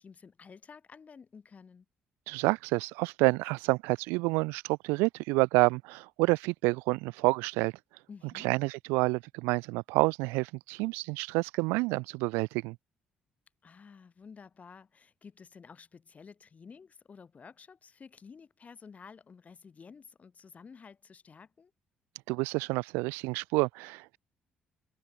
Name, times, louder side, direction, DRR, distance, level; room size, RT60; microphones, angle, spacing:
voice 1, 0.0-1.9 8.1-8.5 13.6-21.7, left 5 dB, 40° left, 4.5 m, -52 dB
voice 2, 2.3-7.7 8.3-12.8 22.3-24.2, right 26 dB, 85° right, 0.3 m, -28 dB
supercardioid pair, 65°, 4 cm